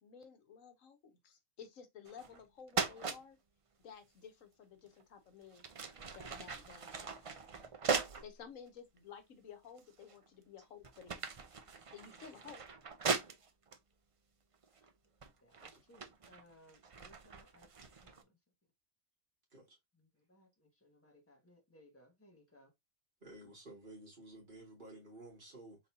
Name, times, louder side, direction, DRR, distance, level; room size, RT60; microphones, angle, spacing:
voice 1, 0.0-3.4 3.8-5.6 6.1-7.3 8.2-11.2 11.9-12.6, left 7 dB, 70° left, 1.3 m, -54 dB
sound 1, 2.1-2.4 2.7-3.2 4.9-5.0 5.5-8.3 9.0-9.1 9.8-10.3 10.6-13.8 14.6-14.9 15.2-18.2, right 5 dB, 60° right, 0.3 m, -40 dB
voice 2, 15.4-17.7 18.0-18.4 19.9-22.7, left 1 dB, 10° left, 1.4 m, -64 dB
voice 3, 23.2-25.8, right 1 dB, 35° right, 2.3 m, -53 dB
4.1 x 4.0 x 2.7 m
omnidirectional pair, 1.4 m